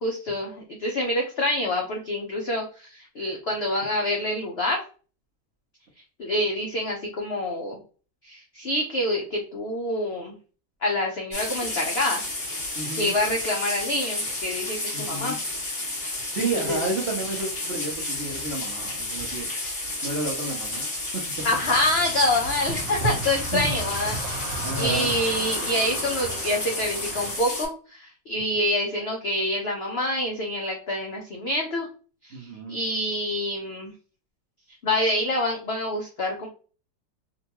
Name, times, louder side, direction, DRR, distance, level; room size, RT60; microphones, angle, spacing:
voice 1, 0.0-4.8 6.2-7.8 8.2-10.4 10.8-12.2 12.9-15.4 16.4-16.8 19.2-19.6 21.4-24.4 24.8-31.9 32.2-33.9 34.8-36.5, left 1 dB, 80° left, 0 dB, 0.5 m, -27 dB
sound 1, 11.3-27.7, left 2 dB, 40° left, 1.7 m, -31 dB
voice 2, 12.8-13.1 14.9-15.4 16.3-19.5 20.0-20.9 23.5-23.7 24.6-25.1 32.3-32.8, right 3 dB, 60° right, -2 dB, 0.7 m, -31 dB
sound 2, 21.4-27.4, right 3 dB, 80° right, 1.4 m, -34 dB
3.7 x 2.2 x 2.8 m, 0.38 s
omnidirectional pair, 1.9 m